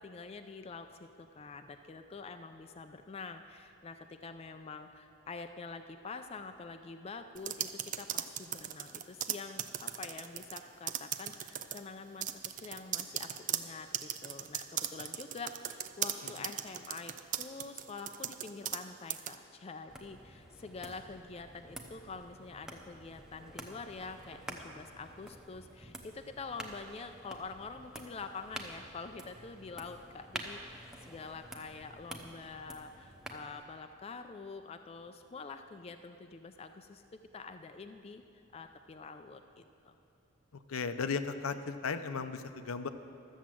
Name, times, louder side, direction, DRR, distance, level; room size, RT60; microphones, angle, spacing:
voice 1, 0.0-37.0 37.3-39.9, left 4 dB, 30° left, 7 dB, 0.4 m, -46 dB
sound 1, 7.4-10.6 10.9-11.8 12.2-18.8 19.1-19.3, right 10 dB, 35° right, 0.4 m, -37 dB
sound 2, 19.9-33.6, equal, 5° right, 0.7 m, -49 dB
voice 2, 40.7-42.9, left 5 dB, 75° left, 10 dB, 0.6 m, -35 dB
13.0 x 7.2 x 7.5 m, 2.8 s
head